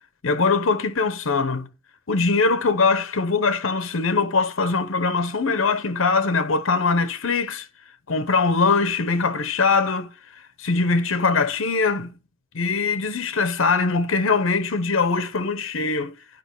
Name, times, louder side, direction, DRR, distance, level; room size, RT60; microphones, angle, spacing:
voice 1, 0.2-1.7 2.1-7.7 8.1-10.1 10.6-12.1 12.5-16.1, left 4 dB, 70° left, 0.8 m, -22 dB
10.5 x 5.0 x 4.6 m
head